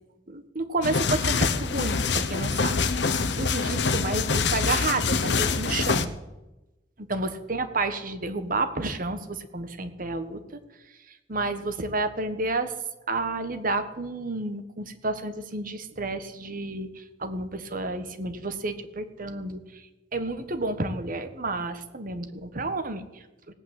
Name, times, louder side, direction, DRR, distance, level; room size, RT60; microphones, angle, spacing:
voice 1, 0.3-2.8 3.1-6.1 7.0-10.6 11.1-12.7 13.1-23.5, right 2 dB, 45° right, 8 dB, 1.4 m, -31 dB
sound 1, 0.8-6.1, left 4 dB, 65° left, 0.9 m, -25 dB
17.5 x 8.8 x 7.6 m, 1.0 s
head